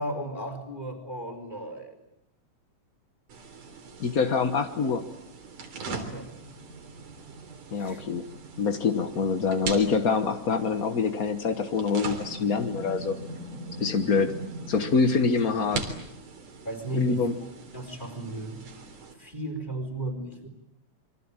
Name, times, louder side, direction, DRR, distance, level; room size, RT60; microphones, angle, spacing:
voice 1, 0.0-2.0 6.1-6.3 7.8-8.0 13.9-14.0 16.6-18.6 19.1-20.5, right 1 dB, 15° left, 7 dB, 4.4 m, -35 dB
sound 1, 3.3-19.1, right 3 dB, 80° right, 5.1 m, -40 dB
voice 2, 4.0-5.0 7.7-8.2 8.6-13.2 13.8-14.3 14.7-15.9 16.9-17.3, left 5 dB, 60° left, 8 dB, 0.9 m, -25 dB
28.0 x 23.5 x 8.9 m, 0.82 s
omnidirectional pair, 3.6 m